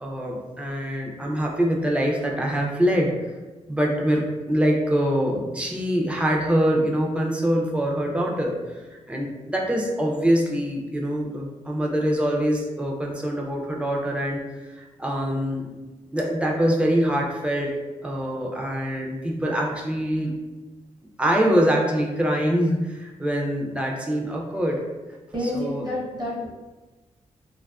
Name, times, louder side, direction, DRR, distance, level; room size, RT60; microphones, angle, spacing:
voice 1, 0.0-3.1 3.7-15.7 16.1-17.7 18.0-20.3 21.2-24.8 25.5-25.8, equal, 10° right, -1 dB, 0.3 m, -24 dB
voice 2, 25.3-26.5, left 1 dB, 30° right, -5 dB, 0.7 m, -28 dB
2.5 x 2.3 x 2.3 m, 1.2 s
wide cardioid pair, 145°, 13 cm